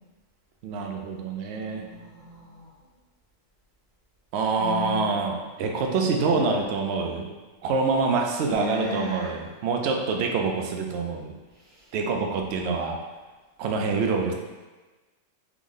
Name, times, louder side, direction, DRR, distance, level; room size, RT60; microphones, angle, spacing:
voice 1, 0.6-1.8 4.3-7.3 7.6-11.3 11.9-13.0 13.6-14.3, right 4 dB, 65° right, 2 dB, 0.7 m, -26 dB
voice 2, 1.8-2.7 4.6-5.1 6.3-6.6 8.4-9.3 11.7-11.8, left 5 dB, 40° right, -8 dB, 1.0 m, -35 dB
3.5 x 3.0 x 3.7 m, 1.2 s
omnidirectional pair, 1.4 m